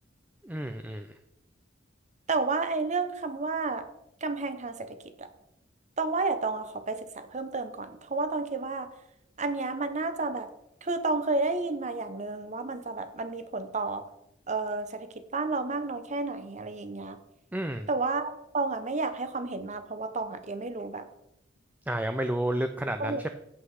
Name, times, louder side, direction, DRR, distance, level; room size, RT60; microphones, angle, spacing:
voice 1, 0.4-1.1 17.5-17.9 21.9-23.3, right 1 dB, 10° right, 8 dB, 0.4 m, -31 dB
voice 2, 2.3-3.9 4.2-5.3 6.0-8.9 9.4-10.5 10.8-14.1 14.5-17.2 17.9-21.1 23.0-23.2, right 3 dB, 40° right, 10 dB, 0.9 m, -31 dB
8.5 x 7.9 x 4.8 m, 0.80 s
head